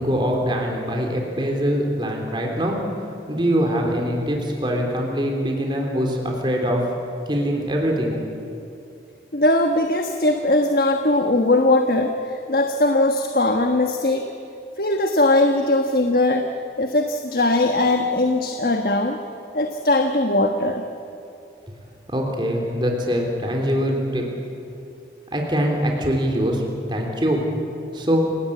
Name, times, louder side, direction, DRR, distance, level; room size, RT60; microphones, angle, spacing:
voice 1, 0.0-2.8 3.3-6.8 7.3-8.2 22.1-24.3 25.3-26.6 26.9-27.4 27.9-28.2, equal, 25° right, 1 dB, 3.4 m, -23 dB
voice 2, 9.3-14.2 14.8-16.5 16.8-19.2 19.5-20.8, left 2 dB, 55° left, 4 dB, 1.4 m, -20 dB
29.0 x 18.5 x 8.6 m, 2.7 s
head